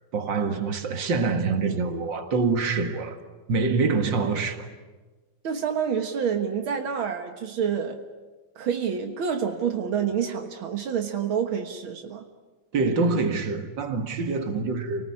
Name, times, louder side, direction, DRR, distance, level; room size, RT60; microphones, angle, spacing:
voice 1, 0.1-3.2 3.5-4.7 12.7-15.1, right 4 dB, 65° right, 2.5 m, -25 dB
voice 2, 5.4-8.0 8.6-12.2, right 7 dB, 85° right, 2.3 m, -28 dB
28.5 x 19.5 x 9.8 m
omnidirectional pair, 2.2 m